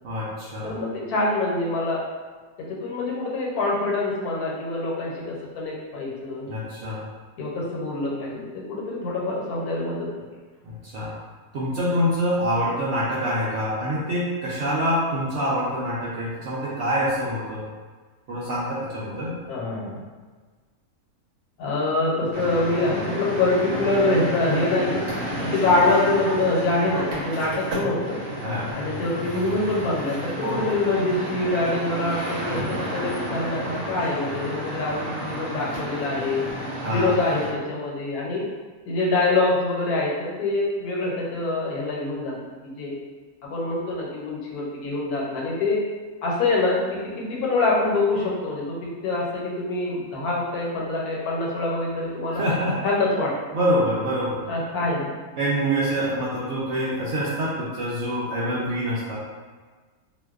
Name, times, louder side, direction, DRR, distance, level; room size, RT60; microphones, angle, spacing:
voice 1, 0.0-0.7 6.5-7.0 10.6-11.1 11.5-17.7 18.3-19.3 28.4-28.7 30.4-30.6 36.8-37.1 52.3-52.8 53.5-54.4 55.4-59.2, equal, 65° right, -7 dB, 0.7 m, -25 dB
voice 2, 0.6-2.0 2.6-6.5 7.4-10.1 19.5-20.0 21.6-25.0 25.4-28.2 28.7-38.4 38.9-42.4 42.6-42.9 43.4-45.8 46.2-48.8 49.0-52.4 52.8-53.3 54.5-55.1, left 2 dB, 80° left, -4 dB, 1.1 m, -25 dB
sound 1, 22.3-37.5, right 1 dB, 85° right, 1.1 m, -31 dB
2.5 x 2.1 x 2.3 m, 1.4 s
omnidirectional pair, 1.6 m